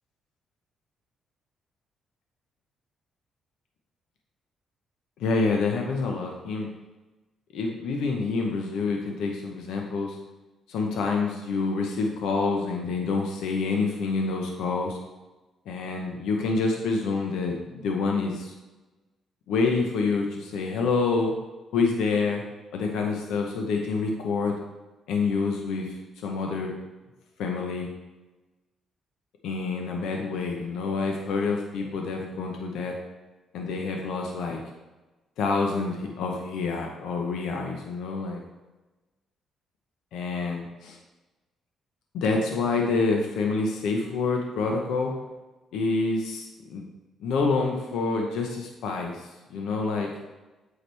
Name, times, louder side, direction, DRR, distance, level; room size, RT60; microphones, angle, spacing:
voice 1, 5.2-6.7 7.5-10.2 10.7-15.0 15.7-18.5 19.5-21.3 21.7-22.4 22.7-24.6 25.1-26.7 27.4-27.9 29.4-33.0 33.5-34.6 35.4-38.4 40.1-41.0 42.1-45.1 45.7-46.8 47.2-50.1, left 4 dB, 85° left, 1 dB, 0.9 m, -27 dB
8.4 x 4.9 x 3.4 m, 1.1 s
cardioid pair, 90°, 0 cm